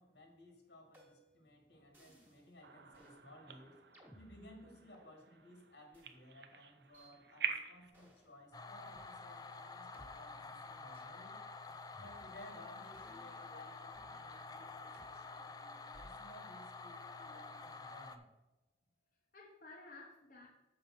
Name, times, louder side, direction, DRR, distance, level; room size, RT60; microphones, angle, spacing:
voice 1, 0.0-11.4 12.0-18.3, left 1 dB, 75° left, 3 dB, 1.9 m, -58 dB
sound 1, 0.9-1.4 1.9-2.5 2.9-3.2 3.9-5.1 5.9-6.1 6.9-7.1 7.9-8.4 8.9-9.0 9.9-10.1 10.9-11.2 11.9-12.5 12.9-14.2 14.9-15.1 15.9-16.3, equal, 10° right, 1.7 m, -62 dB
sound 2, 2.6-7.9, right 6 dB, 70° right, 0.7 m, -46 dB
sound 3, 8.5-18.2, left 3 dB, 20° left, 0.4 m, -49 dB
voice 2, 19.3-20.5, left 3 dB, 50° left, -3 dB, 1.0 m, -56 dB
6.8 x 5.3 x 5.9 m, 1.1 s
head